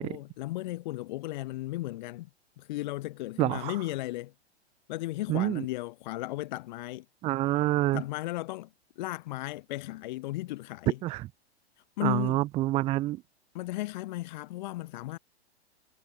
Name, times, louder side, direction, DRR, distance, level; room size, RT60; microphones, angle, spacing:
voice 1, 0.0-2.3 2.6-4.3 4.9-7.0 7.9-8.7 9.0-11.0 12.0-12.4 13.5-15.2, left 17 dB, 45° left, 1.1 m, -35 dB
voice 2, 3.4-3.8 5.3-5.6 7.2-8.0 11.0-11.3 12.0-13.2, right 16 dB, 20° right, 0.6 m, -27 dB
figure-of-eight pair, 110°, 33 cm